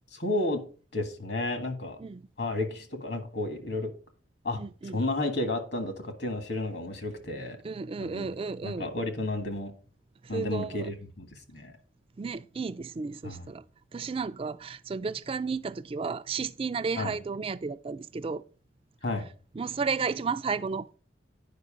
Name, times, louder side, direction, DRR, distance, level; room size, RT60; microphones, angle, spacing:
voice 1, 0.1-0.6 0.9-2.0 2.4-3.9 4.4-4.6 4.9-7.6 8.0-8.3 8.6-9.7 10.3-11.3 11.5-11.7 13.2-13.5 17.0-17.1 19.0-19.3, left 2 dB, 60° left, 1.6 m, -32 dB
voice 2, 4.5-5.0 7.6-8.9 10.2-10.9 12.2-13.6 13.9-18.4 19.6-20.9, right 5 dB, 30° right, 0.3 m, -33 dB
9.5 x 5.3 x 5.0 m
head